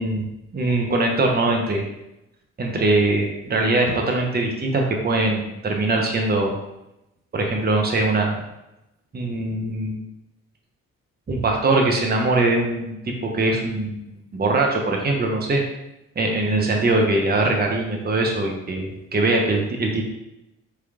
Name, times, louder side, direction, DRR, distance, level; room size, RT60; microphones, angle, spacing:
voice 1, 0.0-1.8 2.6-6.6 7.3-8.4 9.1-10.0 11.3-15.6 16.2-20.1, right 2 dB, 25° right, 1 dB, 0.8 m, -22 dB
4.7 x 3.3 x 2.4 m, 0.91 s
hypercardioid pair, 45°, 40 cm